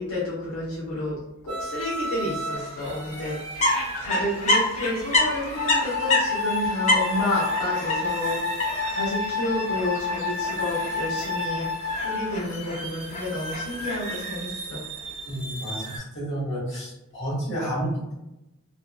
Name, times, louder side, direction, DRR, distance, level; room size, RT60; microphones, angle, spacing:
voice 1, 0.0-3.6 4.0-11.8 12.0-14.8, left 1 dB, 85° left, -7 dB, 0.8 m, -30 dB
sound 1, 1.5-16.0, right 2 dB, 30° right, 1.0 m, -36 dB
sound 2, 3.5-14.2, left 2 dB, 30° left, 0.4 m, -28 dB
Wind instrument woodwind instrument, 5.6-12.3, left 5 dB, 10° left, 0.9 m, -29 dB
voice 2, 15.2-18.1, right 1 dB, 55° left, -7 dB, 1.2 m, -30 dB
2.6 x 2.3 x 2.3 m, 0.91 s
head